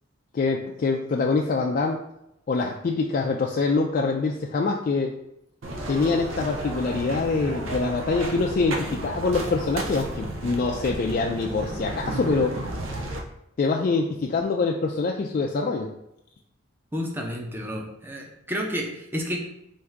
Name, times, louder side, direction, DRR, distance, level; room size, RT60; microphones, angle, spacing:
voice 1, 0.3-2.0 2.5-5.1 5.9-12.6 13.6-15.9, left 3 dB, 45° left, 0 dB, 0.3 m, -25 dB
sound 1, 5.6-13.2, right 1 dB, 90° right, 0.7 m, -33 dB
voice 2, 16.9-19.4, equal, 10° right, 0 dB, 0.6 m, -31 dB
3.6 x 2.6 x 4.5 m, 0.82 s
head